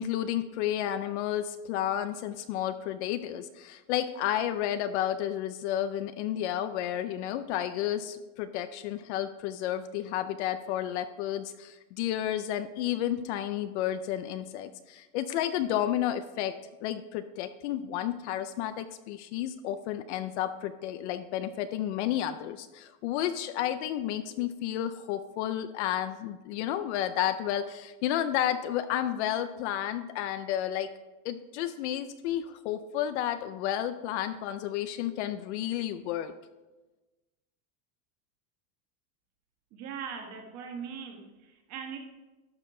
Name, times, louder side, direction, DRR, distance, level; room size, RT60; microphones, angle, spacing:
voice 1, 0.0-16.5 16.8-30.9 31.2-36.3, left 11 dB, 50° left, 11 dB, 0.5 m, -31 dB
voice 2, 39.7-42.0, right 7 dB, 35° right, 3 dB, 1.3 m, -40 dB
12.0 x 6.6 x 3.8 m, 1.1 s
supercardioid pair, 170°, 45 cm